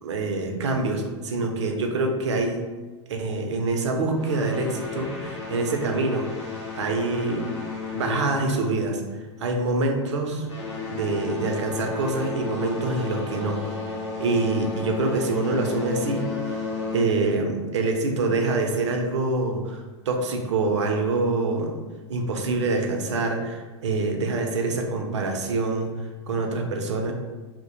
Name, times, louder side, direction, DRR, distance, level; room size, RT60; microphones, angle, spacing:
voice 1, 0.0-2.6 3.1-6.3 6.8-7.5 7.9-10.5 10.9-13.7 14.2-16.6 16.9-21.8 22.1-27.1, right 3 dB, 70° right, 3 dB, 0.5 m, -25 dB
sound 1, 4.2-9.1 9.4-9.7 10.3-17.3, left 4 dB, 75° left, 0.7 m, -33 dB
2.1 x 2.0 x 2.8 m, 1.3 s
hypercardioid pair, 95°, 15 cm